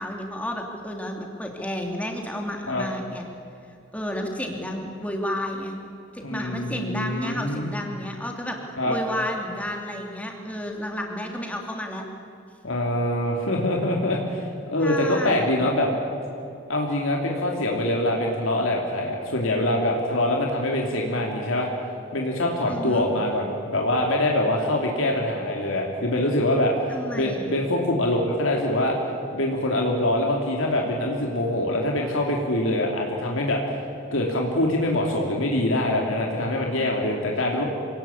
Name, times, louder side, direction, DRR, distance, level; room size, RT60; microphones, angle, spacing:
voice 1, 0.0-3.2 3.9-5.8 6.1-8.6 8.8-12.0 14.8-15.6 22.7-23.1 26.9-27.5, left 1 dB, 5° left, 2 dB, 2.8 m, -31 dB
voice 2, 6.2-7.7 8.8-8.9 12.6-15.9 16.7-21.7 22.1-29.0 29.3-37.6, left 1 dB, 80° left, 0 dB, 2.9 m, -24 dB
27.0 x 18.5 x 8.6 m, 2.7 s
head